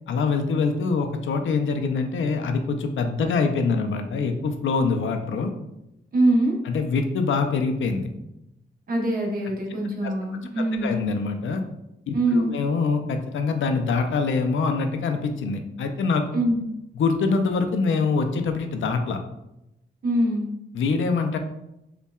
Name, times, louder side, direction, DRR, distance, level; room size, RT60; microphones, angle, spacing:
voice 1, 0.1-5.5 6.6-8.1 10.0-10.1 10.8-11.6 12.1-16.4 17.0-19.2 20.7-21.4, left 4 dB, 80° left, 6 dB, 0.5 m, -24 dB
voice 2, 6.1-6.6 8.9-10.9 12.1-12.5 16.3-16.7 20.0-20.5, right 1 dB, 45° right, -2 dB, 1.0 m, -23 dB
5.5 x 2.2 x 2.3 m, 0.87 s
wide cardioid pair, 135°, 20 cm